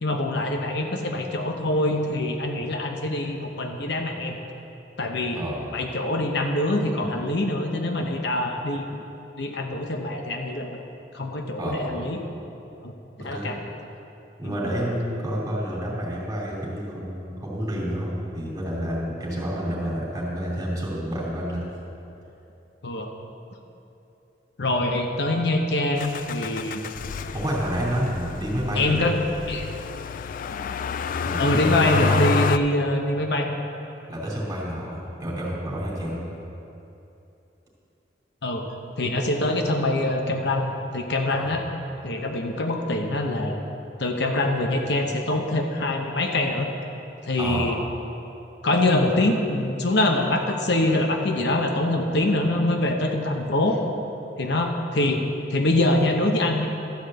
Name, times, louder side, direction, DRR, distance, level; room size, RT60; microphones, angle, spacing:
voice 1, 0.0-4.4 5.0-5.4 5.7-8.8 9.4-10.8 11.1-12.2 12.8-12.9 13.2-13.6 14.4-14.6 22.8-23.1 24.6-26.8 28.8-29.2 29.5-29.7 31.4-33.5 38.4-38.6 39.0-41.6 42.0-43.6 44.0-46.7 47.2-47.8 48.6-53.8 54.4-55.2 55.5-56.7, left 1 dB, 70° left, 3 dB, 0.9 m, -24 dB
voice 2, 11.6-12.0 13.3-13.6 14.4-21.8 27.3-29.2 31.2-32.3 34.1-36.3 41.4-41.6 47.4-47.8, equal, 20° right, -6 dB, 2.9 m, -29 dB
Motor vehicle (road), 26.0-32.6, left 5 dB, 50° left, 0.3 m, -29 dB
13.0 x 5.1 x 7.7 m, 2.9 s
head